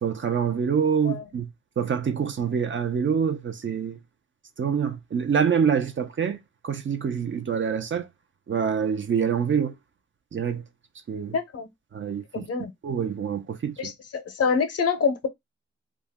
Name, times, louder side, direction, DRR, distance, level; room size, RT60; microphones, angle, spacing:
voice 1, 0.0-1.5 1.8-4.0 4.6-6.4 6.6-8.1 8.5-9.7 10.3-10.6 11.1-11.3 11.9-12.5 12.8-13.9, right 7 dB, 40° right, 0.6 m, -26 dB
voice 2, 11.3-11.7 12.3-12.7 13.8-15.3, left 5 dB, 55° left, 0.7 m, -26 dB
2.4 x 2.1 x 3.4 m
cardioid pair, 60°, 29 cm